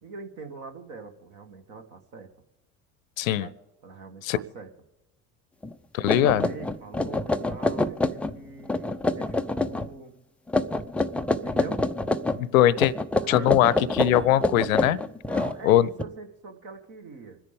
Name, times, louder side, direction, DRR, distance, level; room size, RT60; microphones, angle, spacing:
voice 1, 0.0-2.3 3.2-3.5 3.8-4.7 6.1-10.2 11.3-11.8 13.2-13.9 15.3-17.4, right 4 dB, 50° right, 4 dB, 2.1 m, -43 dB
voice 2, 3.2-3.5 4.2-4.4 5.9-6.5 12.4-12.9 13.3-15.0 15.6-15.9, left 12 dB, 65° left, 21 dB, 0.7 m, -21 dB
sound 1, 5.6-5.7 6.1-8.4 8.6-9.9 10.5-12.4 12.8-16.0, left 2 dB, 5° left, 0.4 m, -26 dB
26.0 x 10.5 x 3.6 m, 0.97 s
figure-of-eight pair, 65°, 44 cm